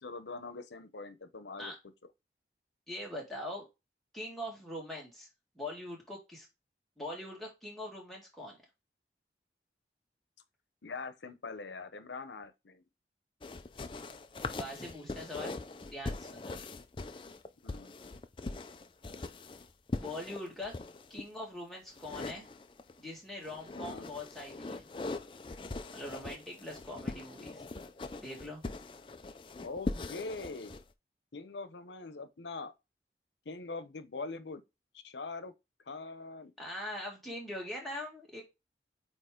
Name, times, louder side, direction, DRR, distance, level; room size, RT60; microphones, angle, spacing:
voice 1, 0.0-1.7 10.8-12.8 17.6-17.9 23.7-24.1 29.6-30.7 31.3-32.7 33.4-34.6 34.9-35.5 35.9-36.5, left 3 dB, 90° left, 0.8 m, -43 dB
voice 2, 2.9-3.7 4.1-5.3 5.6-6.5 7.0-8.6 14.4-15.6 15.9-16.6 19.9-20.7 21.1-22.5 23.0-24.9 25.9-27.6 28.2-28.6 36.6-38.4, left 1 dB, ahead, 2.0 m, -42 dB
sound 1, 13.4-21.3 21.9-23.0 23.4-30.8, left 3 dB, 30° left, 0.4 m, -41 dB
8.5 x 3.1 x 3.7 m
head